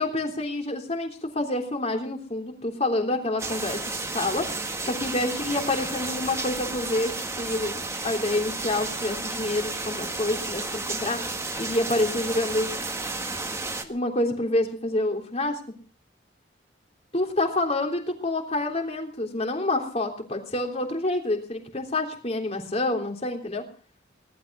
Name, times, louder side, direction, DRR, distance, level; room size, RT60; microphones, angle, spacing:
voice 1, 0.0-3.8 4.1-4.4 4.8-7.8 8.0-11.2 11.6-12.7 13.8-15.6 17.1-23.6, left 2 dB, 35° left, 3 dB, 3.3 m, -27 dB
sound 1, 3.4-13.9, right 3 dB, 15° right, 1.6 m, -32 dB
19.0 x 12.0 x 6.2 m, 0.41 s
head